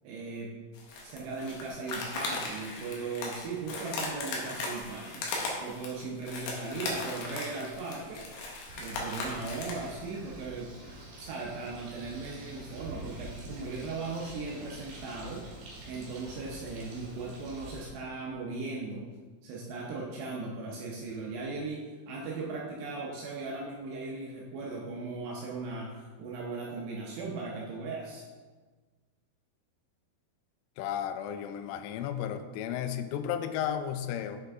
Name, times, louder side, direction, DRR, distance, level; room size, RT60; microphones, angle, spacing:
voice 1, 0.0-0.5 1.0-5.3 5.6-8.2 8.8-10.7 11.2-15.5 15.9-19.1 19.4-28.2, right 3 dB, 80° right, -3 dB, 2.6 m, -38 dB
sound 1, 0.7-9.9, left 2 dB, 70° left, 2.5 m, -37 dB
Bird, 8.7-17.9, right 1 dB, 55° right, 2.7 m, -47 dB
voice 2, 30.8-34.4, left 9 dB, 85° left, 9 dB, 3.0 m, -33 dB
7.9 x 5.7 x 3.5 m, 1.4 s
omnidirectional pair, 5.6 m